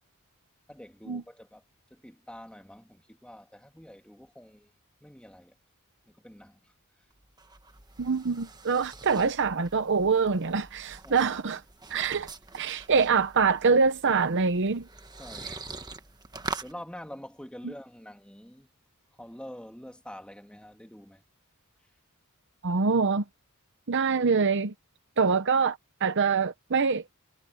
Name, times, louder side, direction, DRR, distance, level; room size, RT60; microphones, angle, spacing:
voice 1, 0.7-1.6 1.9-4.7 5.0-5.6 6.1-6.7 11.0-11.3 15.2-15.7 16.6-18.7 19.1-21.2, equal, 5° left, 2.7 m, -46 dB
sound 1, 7.1-16.7, right 3 dB, 20° right, 1.4 m, -44 dB
voice 2, 8.0-11.6 11.9-12.3 12.5-14.9 22.6-23.2 23.9-24.7 25.2-27.0, right 5 dB, 55° right, 0.8 m, -25 dB
head